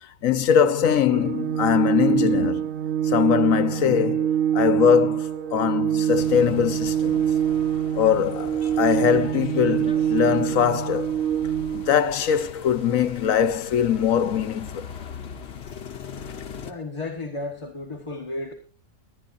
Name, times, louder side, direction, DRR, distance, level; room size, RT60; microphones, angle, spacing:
voice 1, 0.0-2.7 3.0-7.3 8.0-11.1 11.7-14.8, left 8 dB, 90° left, 1.4 m, -22 dB
Organ, 1.1-12.0, right 9 dB, 70° right, 1.4 m, -25 dB
sound 1, 6.2-16.7, left 6 dB, 55° left, 1.3 m, -41 dB
voice 2, 16.6-18.5, left 2 dB, 25° left, 1.4 m, -33 dB
22.0 x 9.8 x 2.6 m
omnidirectional pair, 1.4 m